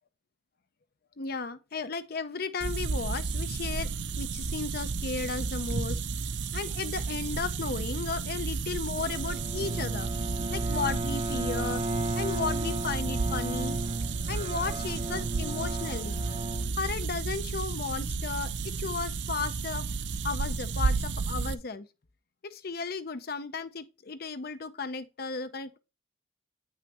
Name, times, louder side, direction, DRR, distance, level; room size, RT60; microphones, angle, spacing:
voice 1, 1.2-3.9 4.2-6.0 6.5-10.1 10.5-11.8 12.2-13.8 14.3-16.2 16.8-19.9 20.2-21.9 22.4-25.8, left 4 dB, 55° left, 0.7 m, -34 dB
sound 1, 2.6-21.5, right 4 dB, 70° right, 0.6 m, -32 dB
Bowed string instrument, 9.0-17.4, right 1 dB, 35° right, 0.9 m, -35 dB
8.8 x 5.6 x 3.0 m
head